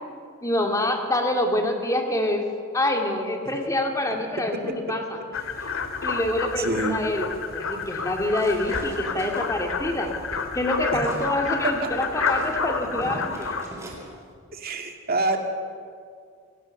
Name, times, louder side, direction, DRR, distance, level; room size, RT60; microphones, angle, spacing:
voice 1, 0.4-2.5 2.7-5.0 6.0-7.3 7.5-10.2 10.5-13.6, left 1 dB, 15° left, 3 dB, 2.4 m, -26 dB
sound 1, 5.3-13.6, left 5 dB, 80° left, 2.0 m, -30 dB
voice 2, 6.6-7.0 11.6-11.9 14.5-15.4, right 3 dB, 45° right, 4 dB, 2.4 m, -26 dB
sound 2, 8.3-11.3 11.6-14.1, right 1 dB, 15° right, 4.1 m, -41 dB
27.5 x 18.0 x 6.6 m, 2.2 s
head